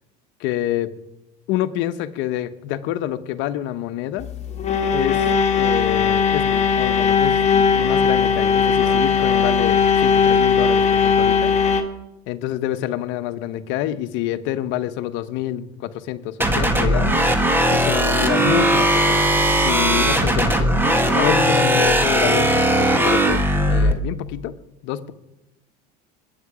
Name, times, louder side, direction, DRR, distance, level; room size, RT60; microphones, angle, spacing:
voice 1, 0.4-0.9 1.5-4.3 4.9-5.2 5.6-11.5 12.3-17.2 17.7-19.2 19.6-20.7 21.1-23.4 23.7-24.5 24.8-25.1, left 12 dB, 65° left, 11 dB, 1.0 m, -27 dB
sound 1, 4.2-11.8, left 6 dB, 30° left, 2.0 m, -18 dB
sound 2, 16.4-23.9, right 1 dB, 10° right, 1.7 m, -18 dB
21.5 x 9.2 x 5.0 m, 0.92 s
supercardioid pair, 100°, 21 cm